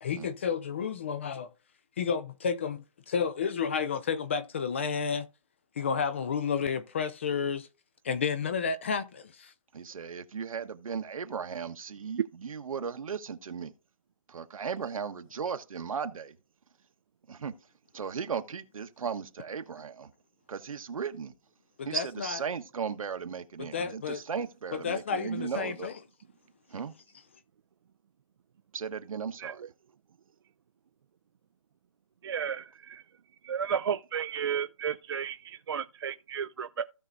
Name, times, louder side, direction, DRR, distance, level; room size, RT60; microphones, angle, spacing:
voice 1, 0.0-1.5 2.0-5.3 5.8-7.7 8.0-9.5 21.8-22.4 23.6-24.2 24.7-25.9, left 6 dB, 20° left, 0.4 m, -31 dB
voice 2, 9.7-13.7 14.3-16.3 17.3-17.5 17.9-20.1 20.5-21.3 21.8-25.9 26.7-26.9 28.7-29.6, right 6 dB, 75° right, 1.1 m, -36 dB
voice 3, 32.2-33.0 33.4-36.8, right 7 dB, 45° right, 0.4 m, -33 dB
16.0 x 5.6 x 2.5 m
hypercardioid pair, 165°, 18 cm